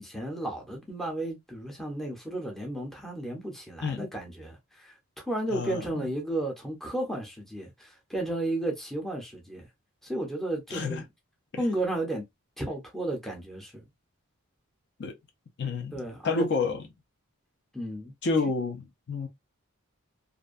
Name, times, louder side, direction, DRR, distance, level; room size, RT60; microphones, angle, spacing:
voice 1, 0.0-4.9 5.3-9.7 10.0-11.1 11.6-12.2 12.6-13.8 15.9-16.5 17.7-18.1, right 1 dB, ahead, 0.6 m, -33 dB
voice 2, 5.5-6.0 10.7-11.0 15.0-15.1 15.6-15.9 16.2-16.8 18.2-19.3, left 4 dB, 50° left, 0.5 m, -29 dB
2.5 x 2.2 x 2.4 m
head